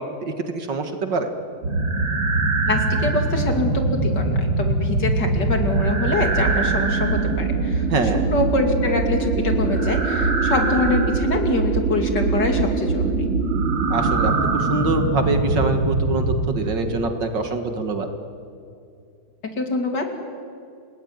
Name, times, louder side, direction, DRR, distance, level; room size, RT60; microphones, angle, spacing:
voice 1, 0.2-1.3 7.9-8.2 13.9-18.1, right 3 dB, 60° right, 6 dB, 2.4 m, -24 dB
sound 1, 1.6-16.5, right 3 dB, 75° right, 3.8 m, -22 dB
voice 2, 2.7-13.3 19.6-20.2, left 2 dB, 55° left, 4 dB, 3.4 m, -25 dB
28.5 x 19.5 x 9.5 m, 2.5 s
omnidirectional pair, 2.3 m